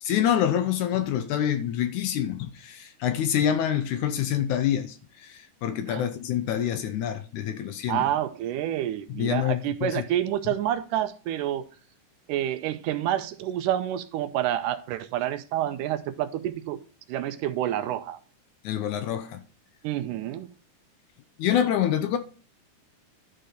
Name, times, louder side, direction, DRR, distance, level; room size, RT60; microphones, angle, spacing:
voice 1, 0.0-8.0 9.2-10.0 18.6-19.4 21.4-22.2, left 10 dB, 80° left, 1.9 m, -26 dB
voice 2, 7.9-11.6 12.3-16.8 17.1-18.2 19.8-20.5, right 12 dB, 80° right, 2.1 m, -28 dB
11.5 x 4.4 x 5.0 m
omnidirectional pair, 3.8 m